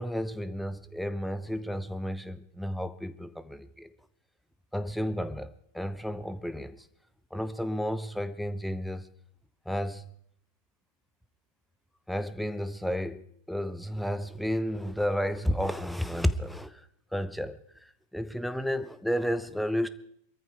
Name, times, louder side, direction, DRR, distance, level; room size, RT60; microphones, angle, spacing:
voice 1, 0.0-3.9 4.7-6.9 7.3-9.1 9.7-10.1 12.1-16.9 17.1-19.9, equal, ahead, 13 dB, 0.8 m, -32 dB
21.5 x 14.0 x 4.7 m, 0.72 s
figure-of-eight pair, 90°, 0 cm